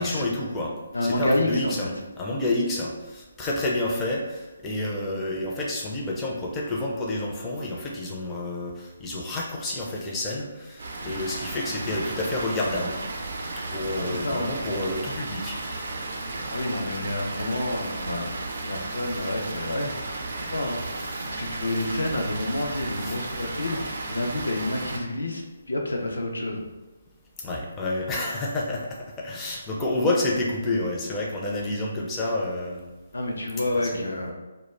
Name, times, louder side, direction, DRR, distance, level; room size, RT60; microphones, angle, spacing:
voice 1, 0.0-0.7 1.0-13.0 13.7-15.6 21.1-21.3 23.0-23.2 27.4-32.9 33.7-34.3, left 2 dB, 15° left, -4 dB, 0.4 m, -29 dB
voice 2, 0.9-1.9 14.0-14.5 16.5-18.3 18.6-19.9 20.4-20.8 21.3-26.6 33.1-34.3, left 1 dB, 75° left, 2 dB, 0.4 m, -29 dB
Water, 10.8-25.0, right 2 dB, 50° right, 0.4 m, -34 dB
2.3 x 2.0 x 3.2 m, 1.1 s
figure-of-eight pair, 145°, 0 cm